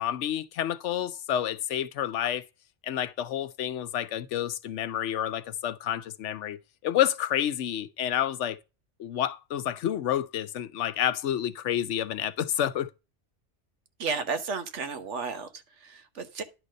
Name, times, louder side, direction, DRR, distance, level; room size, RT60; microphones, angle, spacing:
voice 1, 0.0-2.4 2.8-6.6 6.8-8.6 9.0-12.9, left 11 dB, 80° left, 1.0 m, -29 dB
voice 2, 14.0-16.4, right 5 dB, 75° right, 1.4 m, -33 dB
10.5 x 4.0 x 6.3 m
omnidirectional pair, 1.2 m